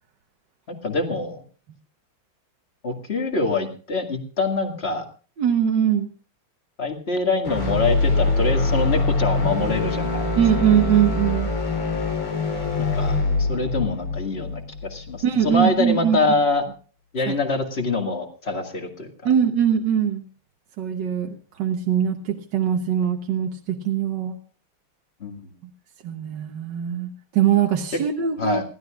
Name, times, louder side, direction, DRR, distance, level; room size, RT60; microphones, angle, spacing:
voice 1, 0.7-1.4 2.8-5.1 6.8-10.3 12.8-16.6 17.1-19.1 25.2-25.4 28.4-28.6, left 3 dB, 30° left, 4 dB, 2.2 m, -25 dB
voice 2, 5.4-6.1 10.4-11.5 15.2-16.2 17.3-17.4 19.2-20.2 20.8-24.4 26.0-28.6, right 9 dB, 60° right, 3 dB, 1.7 m, -22 dB
sound 1, 7.4-15.6, left 3 dB, 90° left, 4.7 m, -24 dB
28.0 x 12.5 x 2.5 m, 0.39 s
omnidirectional pair, 2.3 m